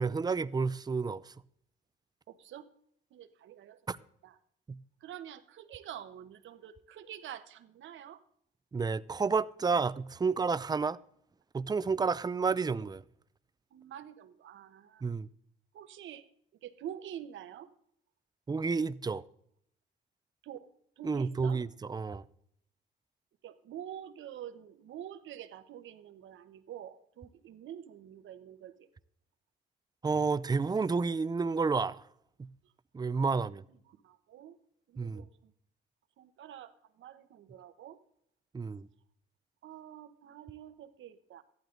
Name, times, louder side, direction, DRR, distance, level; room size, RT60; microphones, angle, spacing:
voice 1, 0.0-1.3 3.9-4.0 4.7-4.8 8.7-11.0 11.5-13.0 15.0-15.3 18.5-19.2 21.0-22.2 30.0-32.0 32.4-32.5 32.9-33.6 35.0-35.2 38.5-38.9, right 4 dB, 20° right, 0.5 m, -30 dB
voice 2, 2.3-2.7 3.1-3.8 4.2-4.4 5.0-8.2 10.8-10.9 13.7-15.1 15.7-16.2 16.6-17.7 20.4-20.7 21.0-21.6 23.4-28.9 33.1-33.3 33.9-34.6 34.9-35.5 36.2-38.0 39.6-41.4, right 10 dB, 75° right, 1.1 m, -47 dB
14.0 x 12.0 x 3.9 m
cardioid pair, 90°, 20 cm